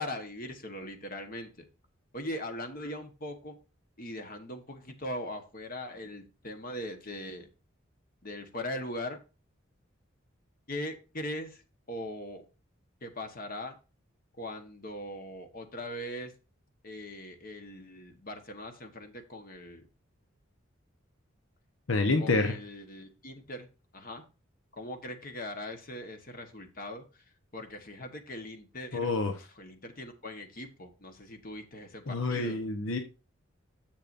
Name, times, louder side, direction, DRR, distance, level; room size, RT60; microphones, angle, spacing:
voice 1, 0.0-1.6 2.1-3.6 4.0-7.5 8.2-9.2 10.7-11.6 11.9-12.4 13.0-13.8 14.4-16.3 16.8-19.8 22.2-23.7 23.9-24.2 24.7-27.0 27.5-29.1 29.4-32.6, left 1 dB, 45° left, 6 dB, 1.3 m, -40 dB
voice 2, 21.9-22.6 28.9-29.3 32.1-33.0, left 3 dB, 80° left, 5 dB, 1.1 m, -27 dB
10.5 x 7.4 x 2.6 m, 0.31 s
head